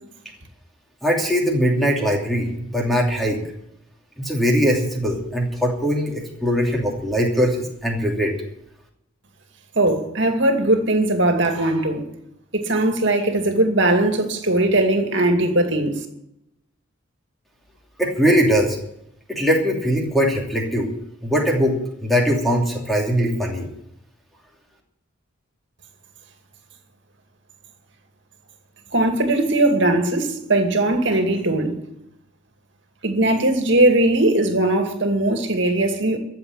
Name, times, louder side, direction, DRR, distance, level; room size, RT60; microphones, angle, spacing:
voice 1, 1.0-3.4 4.2-8.3 18.0-18.8 19.3-20.9 21.2-23.7, equal, ahead, 2.9 m, -21 dB
voice 2, 9.8-12.1 12.5-15.9 28.9-31.7 33.0-36.2, right 1 dB, 55° right, 2.4 m, -19 dB
14.0 x 7.5 x 9.9 m
head